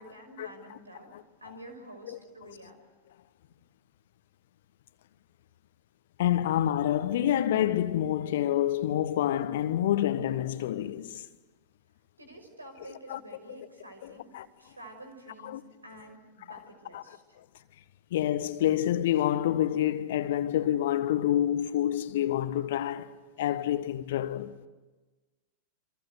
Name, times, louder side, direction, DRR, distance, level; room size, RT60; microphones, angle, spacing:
voice 1, 0.0-1.1 1.4-2.8 12.2-14.3 14.6-17.2, right 1 dB, 80° right, 5.7 m, -49 dB
voice 2, 6.2-11.2 13.1-13.2 14.0-14.5 15.4-15.6 16.5-16.6 16.9-17.0 18.1-23.1 23.4-24.5, left 11 dB, 55° left, 1.4 m, -27 dB
28.5 x 26.0 x 8.1 m
figure-of-eight pair, 90°, 0 cm